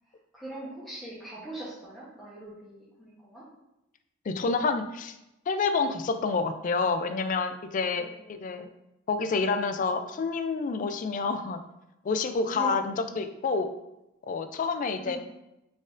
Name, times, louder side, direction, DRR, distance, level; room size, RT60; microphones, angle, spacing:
voice 1, 0.3-3.4 8.0-8.4 12.5-12.8 15.0-15.2, right 2 dB, ahead, -11 dB, 0.9 m, -41 dB
voice 2, 4.3-5.2 5.5-8.7 9.1-11.6 12.0-13.7 14.2-15.2, left 4 dB, 40° left, 9 dB, 0.3 m, -28 dB
4.2 x 3.6 x 2.5 m, 0.91 s
head